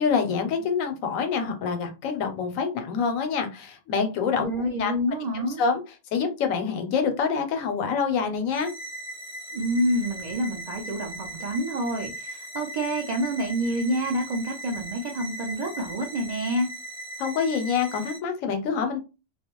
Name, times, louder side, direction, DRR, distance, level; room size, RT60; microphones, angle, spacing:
voice 1, 0.0-4.5 4.8-4.9 5.6-5.8 6.1-8.7 17.2-19.0, left 6 dB, 90° left, 6 dB, 1.0 m, -26 dB
voice 2, 4.4-5.6 9.5-16.7, equal, 65° right, 0 dB, 0.4 m, -28 dB
sound 1, 8.5-18.2, right 1 dB, 5° right, 0.6 m, -39 dB
2.3 x 2.1 x 2.9 m, 0.29 s
omnidirectional pair, 1.4 m